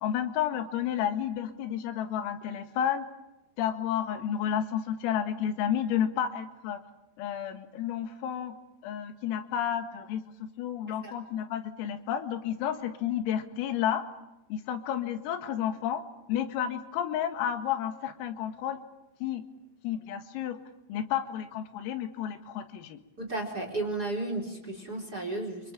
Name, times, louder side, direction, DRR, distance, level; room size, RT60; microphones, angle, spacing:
voice 1, 0.0-3.1 3.6-6.8 7.2-8.5 8.8-10.2 10.6-14.0 14.5-16.0 16.3-18.8 19.2-19.4 19.8-20.6 20.9-23.0, left 9 dB, 85° left, 8 dB, 4.4 m, -31 dB
voice 2, 23.2-25.7, right 2 dB, 20° right, 4 dB, 4.0 m, -33 dB
30.0 x 26.0 x 7.3 m, 0.94 s
omnidirectional pair, 6.0 m